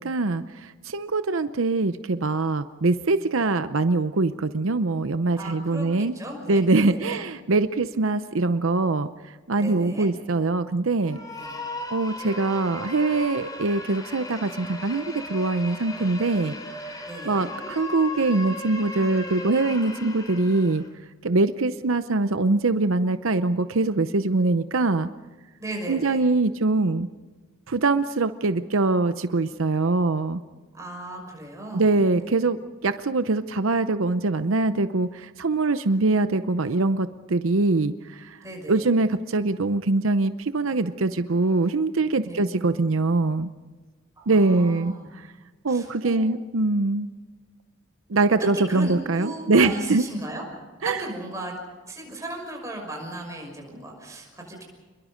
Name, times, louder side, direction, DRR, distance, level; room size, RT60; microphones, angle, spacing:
voice 1, 0.0-6.2 6.5-9.1 9.5-11.2 11.9-16.5 17.0-20.8 21.2-25.1 25.9-27.1 27.7-30.4 31.7-32.6 32.8-38.3 38.7-43.5 44.3-44.9 45.6-47.1 48.1-50.1 50.8-51.0, right 3 dB, 80° right, 11 dB, 0.7 m, -23 dB
voice 2, 5.4-5.9 6.1-7.2 9.6-10.1 11.4-11.6 17.0-17.5 25.6-26.2 30.7-31.9 32.2-32.3 38.4-38.9 42.2-42.4 44.2-45.1 45.7-46.3 48.3-50.4 50.8-51.5 51.8-54.6, right 1 dB, 15° right, 0 dB, 6.0 m, -36 dB
sound 1, 11.0-20.9, left 2 dB, 20° left, 3.3 m, -37 dB
28.5 x 22.0 x 5.1 m, 1.3 s
head